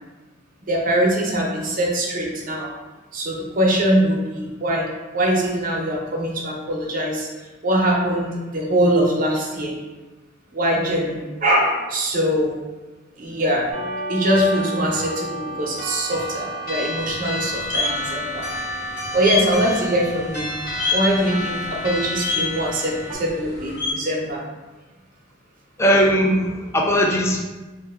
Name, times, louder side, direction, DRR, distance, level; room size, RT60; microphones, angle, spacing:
voice 1, 0.7-2.7 3.1-7.3 7.6-9.7 10.5-12.6 13.2-13.7 14.1-18.5 19.1-20.5 20.9-24.4, equal, 45° right, -1 dB, 0.6 m, -22 dB
sound 1, 13.7-23.2, equal, 55° left, 1.1 m, -30 dB
sound 2, 17.0-23.9, left 4 dB, 80° left, 0.8 m, -29 dB
voice 2, 25.8-27.4, equal, 15° left, 0 dB, 0.3 m, -18 dB
2.5 x 2.2 x 3.4 m, 1.2 s
head